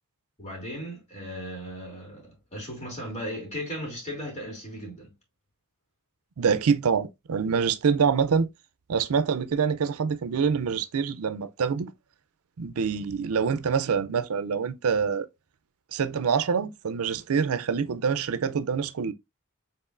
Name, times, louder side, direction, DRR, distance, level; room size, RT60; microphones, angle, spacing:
voice 1, 0.4-5.1, equal, 30° left, 2.6 m, -37 dB
voice 2, 6.4-8.5 8.9-11.9 12.6-15.3 15.9-19.1, right 6 dB, 85° right, 0.5 m, -25 dB
5.4 x 3.6 x 2.4 m
head